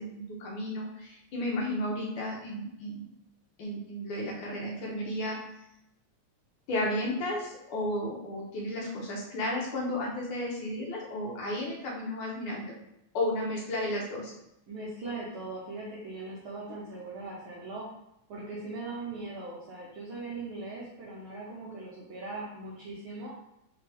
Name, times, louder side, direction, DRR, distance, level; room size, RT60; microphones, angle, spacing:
voice 1, 0.0-3.0 3.6-5.4 6.7-12.7 13.1-14.3, left 1 dB, 70° left, -3 dB, 1.4 m, -33 dB
voice 2, 14.7-17.9 18.3-23.3, right 3 dB, 85° right, -5 dB, 1.1 m, -40 dB
4.3 x 3.4 x 3.4 m, 0.81 s
omnidirectional pair, 3.3 m